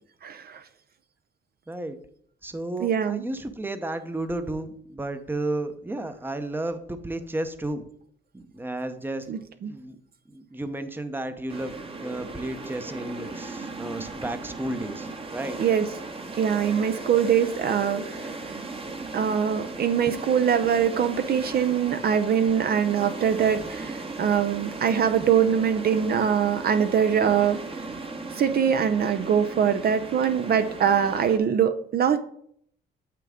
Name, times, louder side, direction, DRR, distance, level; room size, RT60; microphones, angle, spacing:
voice 1, 0.2-0.6 2.8-3.2 9.3-9.7 15.6-15.9 16.4-18.3 19.1-27.6 28.3-32.2, right 8 dB, 50° right, 9 dB, 0.5 m, -23 dB
voice 2, 2.4-7.9 8.3-9.3 9.7-10.0 10.3-11.7 12.0-15.6 23.5-23.9, right 1 dB, 10° right, 9 dB, 0.7 m, -33 dB
sound 1, 11.5-31.4, right 3 dB, 30° right, 1.0 m, -37 dB
7.3 x 5.8 x 3.6 m, 0.66 s
cardioid pair, 90°, 20 cm